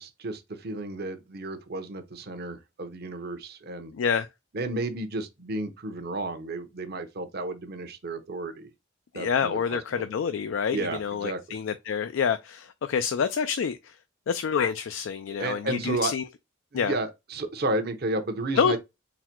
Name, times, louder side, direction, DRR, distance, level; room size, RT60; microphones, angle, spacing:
voice 1, 0.0-3.9 4.5-8.7 9.1-10.1 10.7-11.4 15.4-16.1 16.7-18.8, right 2 dB, 55° right, 0.8 m, -32 dB
voice 2, 3.9-4.3 9.1-14.0 14.3-16.2 16.7-17.0 18.6-18.8, left 6 dB, 70° left, 0.4 m, -27 dB
4.0 x 2.1 x 4.4 m
head